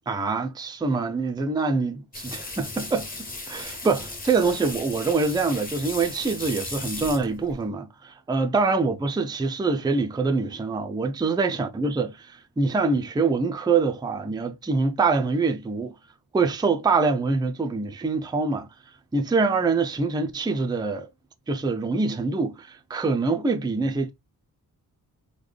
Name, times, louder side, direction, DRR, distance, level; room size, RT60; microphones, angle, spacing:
voice 1, 0.1-3.1 3.5-15.9 16.3-18.7 19.1-21.1 21.5-24.1, right 4 dB, 10° right, 0.4 m, -25 dB
sound 1, 2.1-7.6, left 2 dB, 25° left, 0.9 m, -36 dB
3.7 x 2.2 x 3.2 m
wide cardioid pair, 130°, 37 cm